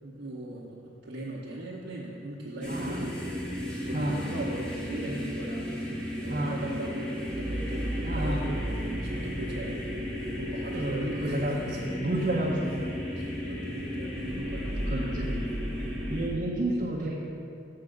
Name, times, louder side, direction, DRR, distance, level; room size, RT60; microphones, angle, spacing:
voice 1, 0.0-5.8 6.2-9.8 10.3-12.3 12.8-15.2 16.7-17.2, right 1 dB, 70° right, -6 dB, 0.9 m, -39 dB
sound 1, 2.6-16.3, equal, 5° left, 1.0 m, -33 dB
voice 2, 2.7-3.1 3.9-4.2 6.3-6.6 8.0-8.4 10.7-11.6 12.0-12.7 14.8-15.3 15.8-17.2, right 1 dB, 45° right, -4 dB, 0.7 m, -31 dB
6.6 x 4.7 x 6.5 m, 2.5 s
head